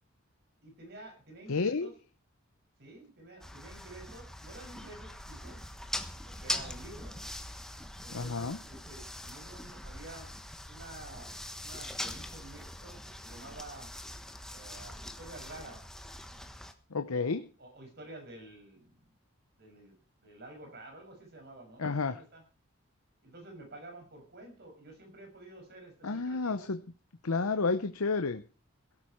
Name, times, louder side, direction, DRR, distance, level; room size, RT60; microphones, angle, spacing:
voice 1, 0.6-1.9 2.8-5.6 6.2-7.4 8.0-10.3 10.7-11.3 11.6-13.9 14.5-15.8 17.1-19.1 19.6-20.0 20.2-22.4 23.2-26.7, right 2 dB, 45° right, 4 dB, 6.5 m, -50 dB
voice 2, 1.5-1.9 8.1-8.6 16.9-17.4 21.8-22.2 26.0-26.8 27.2-28.4, left 4 dB, 85° left, 9 dB, 0.8 m, -30 dB
sound 1, 3.4-16.7, left 1 dB, ahead, 1.2 m, -42 dB
17.0 x 13.0 x 4.6 m, 0.37 s
head